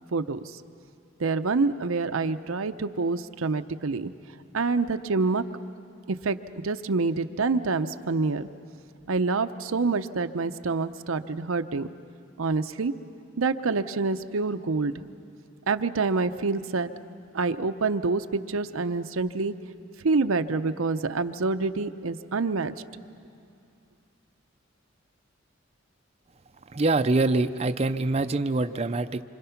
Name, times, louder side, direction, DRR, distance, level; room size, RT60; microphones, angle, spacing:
voice 1, 0.1-0.4 1.2-4.1 4.5-5.4 6.1-6.4 6.6-8.5 9.1-11.9 12.4-12.9 13.4-14.9 15.7-16.9 17.3-19.5 20.0-22.7, right 4 dB, 90° right, 9 dB, 0.7 m, -26 dB
voice 2, 26.7-29.2, right 2 dB, 30° right, 9 dB, 0.5 m, -25 dB
26.5 x 25.5 x 5.8 m, 2.5 s
head